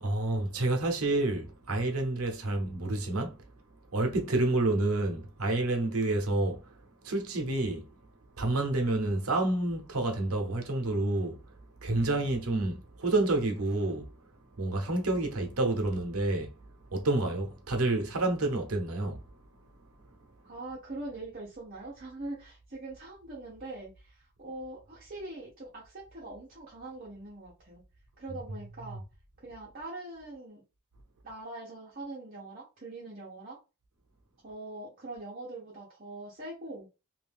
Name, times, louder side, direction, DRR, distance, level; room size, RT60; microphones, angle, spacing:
voice 1, 0.0-3.4 3.9-6.7 7.0-7.9 8.4-11.4 11.8-14.1 14.6-16.5 16.9-19.2 28.3-29.0, right 2 dB, 85° right, 0.9 m, -29 dB
voice 2, 20.4-27.8 28.2-29.0 29.4-30.6 31.2-33.6 34.4-36.9, right 2 dB, 40° right, 1.0 m, -43 dB
2.6 x 2.6 x 3.5 m
head